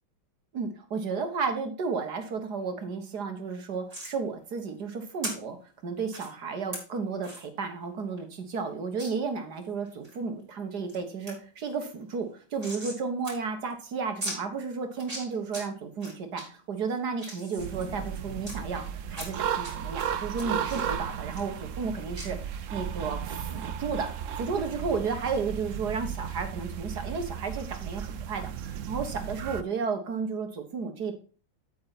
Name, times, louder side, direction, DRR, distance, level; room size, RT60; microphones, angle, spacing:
voice 1, 0.5-5.6 5.8-24.1 24.4-31.1, right 5 dB, 55° right, 5 dB, 2.0 m, -33 dB
sound 1, 3.9-4.1 5.2-5.3 6.1-6.3 6.7-6.8 7.2-7.4 7.8-7.9 8.2-8.3 9.0-9.1 9.6-10.2 10.6-11.0 11.3-11.4 11.6-13.0 13.2-13.3 13.6-13.7 14.2-14.4 14.9-15.6 16.0-16.4 16.9-18.5 19.1-19.7 20.0-21.9 22.2-22.3, right 1 dB, 15° right, 4.3 m, -39 dB
sound 2, 17.6-29.6, right 8 dB, 85° right, 0.6 m, -35 dB
8.7 x 8.5 x 4.1 m, 0.36 s
omnidirectional pair, 2.2 m